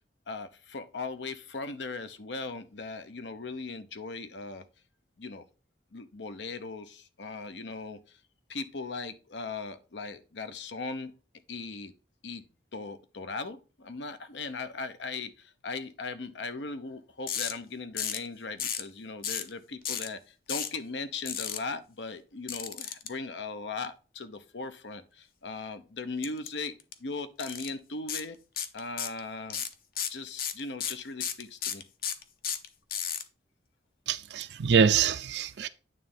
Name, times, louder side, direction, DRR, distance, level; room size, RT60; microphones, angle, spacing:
voice 1, 0.3-4.7 5.2-5.4 5.9-8.2 8.5-11.1 11.5-11.9 12.2-12.4 12.7-26.7 27.0-28.4 28.7-29.6 30.1-31.8, left 3 dB, 85° left, 0.9 m, -38 dB
sound 1, 17.3-17.5 18.0-18.3 18.6-18.9 19.2-19.5 19.8-20.1 20.5-20.7 21.3-21.6 22.5-23.1 26.2-26.5 26.8-26.9 27.4-27.7 28.1-28.2 28.6-29.2 29.5-33.2, left 8 dB, 55° left, 0.7 m, -33 dB
voice 2, 34.1-35.7, right 6 dB, 70° right, 0.4 m, -25 dB
9.3 x 3.2 x 5.5 m
head